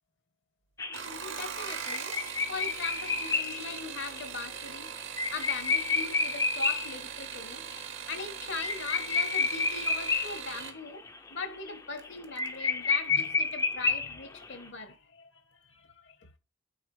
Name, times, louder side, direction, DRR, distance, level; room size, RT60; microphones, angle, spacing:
sound 1, 0.8-7.0 7.3-7.4 7.7-7.8 8.1-10.7 11.1-11.4 11.7-11.8 12.1-12.2 12.4-14.5, left 4 dB, 15° left, 0.4 m, -30 dB
sound 2, 0.8-10.8 12.0-12.5 12.9-13.3 13.6-13.7, right 8 dB, 60° right, 0.8 m, -40 dB
voice 1, 0.9-2.2 2.5-7.7 8.1-16.3, left 4 dB, 60° left, 0.9 m, -41 dB
8.8 x 3.9 x 3.1 m
head